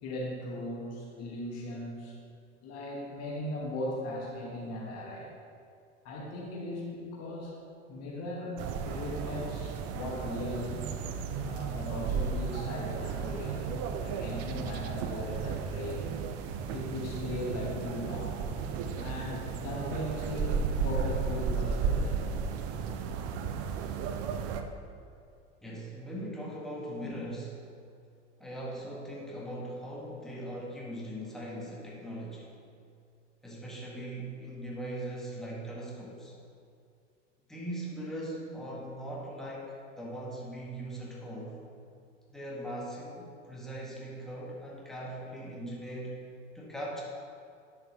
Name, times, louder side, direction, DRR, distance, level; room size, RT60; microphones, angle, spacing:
voice 1, 0.0-2.2 2.6-5.3 6.0-7.6 7.9-10.8 11.4-13.7 14.0-16.1 16.7-18.5 18.9-22.3 27.0-27.1, left 1 dB, 45° left, -3 dB, 1.9 m, -38 dB
sound 1, 8.6-24.6, right 6 dB, 40° right, 0.7 m, -34 dB
sound 2, 20.0-23.1, right 2 dB, 20° right, 1.5 m, -52 dB
voice 2, 25.6-27.5 28.4-32.5 33.4-36.4 37.5-41.6 42.3-46.2 46.5-47.0, right 1 dB, ahead, -5 dB, 1.8 m, -40 dB
10.0 x 7.2 x 3.2 m, 2.3 s
figure-of-eight pair, 75°, 36 cm